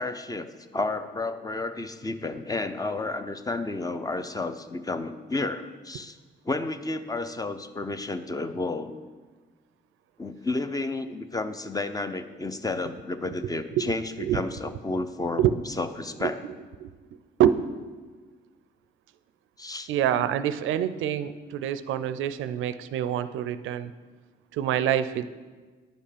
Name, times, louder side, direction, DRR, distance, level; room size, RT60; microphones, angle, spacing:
voice 1, 0.0-6.1 6.5-9.0 10.2-16.3 19.6-19.9, left 2 dB, 20° left, 10 dB, 0.6 m, -31 dB
voice 2, 19.9-23.9 24.6-25.3, right 10 dB, 80° right, 13 dB, 0.4 m, -26 dB
10.0 x 5.4 x 5.0 m, 1.4 s
cardioid pair, 90°, 20 cm